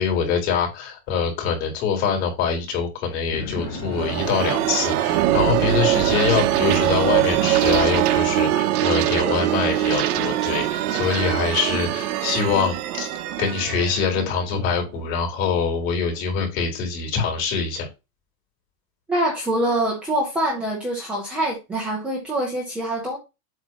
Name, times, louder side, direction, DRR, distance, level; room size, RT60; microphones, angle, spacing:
voice 1, 0.0-17.9, left 6 dB, 45° left, 3.6 m, -24 dB
sound 1, 3.3-6.4, left 6 dB, 85° left, 1.7 m, -37 dB
sound 2, 3.6-15.1, right 13 dB, 70° right, 1.0 m, -22 dB
voice 2, 19.1-23.2, right 1 dB, 5° right, 0.4 m, -24 dB
7.8 x 2.9 x 6.0 m
supercardioid pair, 175°, 46 cm